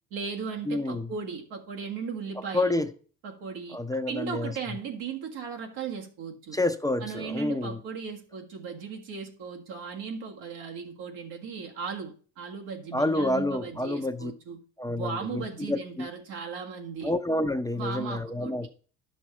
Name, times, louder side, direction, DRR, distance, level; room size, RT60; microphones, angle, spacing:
voice 1, 0.1-2.9 3.2-6.6 7.0-14.6 15.0-17.1 17.7-18.5, right 5 dB, 85° right, 1.9 m, -37 dB
voice 2, 0.7-1.1 2.5-2.9 3.7-4.5 6.5-7.8 12.9-14.3 14.8-16.1 17.0-18.7, left 2 dB, 10° left, 0.6 m, -28 dB
11.0 x 6.3 x 4.3 m
cardioid pair, 90°, 40 cm